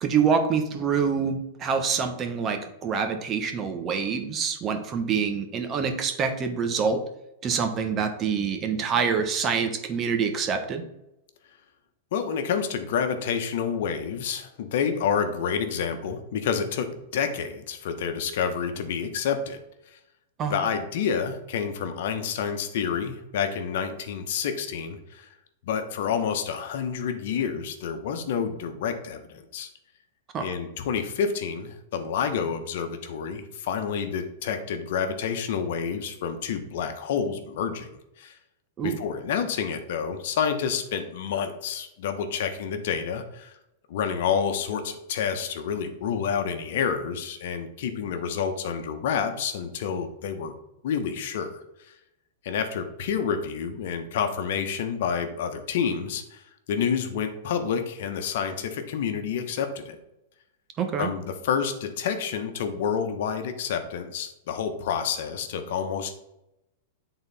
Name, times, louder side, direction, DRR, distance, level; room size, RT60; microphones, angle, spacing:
voice 1, 0.0-7.0 7.4-10.8 20.4-20.6 30.3-30.5 38.8-39.0 60.8-61.1, right 6 dB, 30° right, 6 dB, 1.0 m, -26 dB
voice 2, 12.1-19.6 19.9-20.0 20.5-25.3 25.6-29.7 30.4-37.9 38.2-38.4 38.8-43.6 43.9-50.5 50.8-51.9 52.4-60.0 61.0-66.1, left 7 dB, 65° left, 7 dB, 1.1 m, -29 dB
8.8 x 4.0 x 4.1 m, 0.86 s
hypercardioid pair, 130°, 0 cm